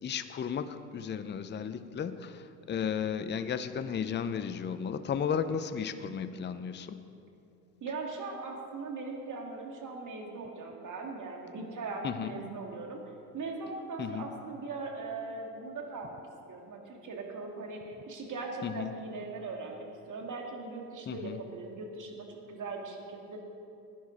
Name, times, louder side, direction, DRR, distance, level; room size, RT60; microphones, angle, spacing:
voice 1, 0.0-7.1 12.0-12.4 14.0-14.3 18.6-18.9 21.1-21.4, left 7 dB, 25° left, 11 dB, 0.6 m, -34 dB
voice 2, 7.8-13.0 13.3-16.2 16.5-23.4, right 3 dB, 40° right, 0 dB, 2.6 m, -40 dB
16.0 x 10.5 x 4.2 m, 2.7 s
hypercardioid pair, 80°, 44 cm